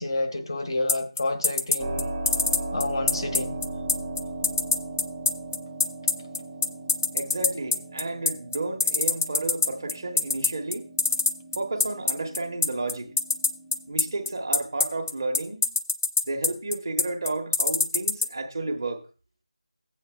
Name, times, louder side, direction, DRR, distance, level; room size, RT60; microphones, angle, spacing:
voice 1, 0.0-2.1 2.7-3.6, left 2 dB, 50° left, 1.2 m, -29 dB
sound 1, 0.9-18.3, left 4 dB, 20° left, 0.4 m, -23 dB
Keyboard (musical), 1.8-14.3, right 2 dB, 20° right, 0.8 m, -38 dB
voice 2, 7.1-10.9 11.5-13.2 13.9-15.7 16.2-19.0, right 2 dB, 40° right, 1.2 m, -32 dB
14.0 x 8.4 x 2.3 m
figure-of-eight pair, 165°, 3 cm